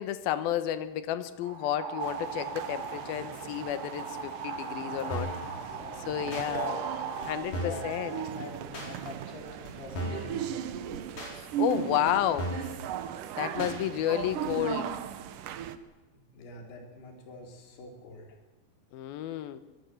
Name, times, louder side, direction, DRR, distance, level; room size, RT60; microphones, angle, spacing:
voice 1, 0.0-5.3 6.1-6.9 7.2-8.1 11.3-12.5 13.4-15.0 18.9-19.6, left 11 dB, 80° left, 12 dB, 2.2 m, -31 dB
sound 1, 1.4-7.3, right 5 dB, 65° right, 4.8 m, -38 dB
sound 2, 2.0-15.8, right 10 dB, 85° right, 1.8 m, -38 dB
sound 3, 5.1-5.4 6.3-6.5 7.2-7.3 7.5-7.9 8.7-8.9 9.6-9.7 9.9-10.3 11.2-11.3 12.1-12.2 12.4-12.7 13.6-13.8 14.5-14.6, equal, 40° left, 7.6 m, -35 dB
voice 2, 5.5-6.3 7.5-10.6 13.6-13.8 16.3-18.3, left 2 dB, 55° left, 2 dB, 5.7 m, -45 dB
24.5 x 21.0 x 7.8 m, 1.1 s
omnidirectional pair, 5.6 m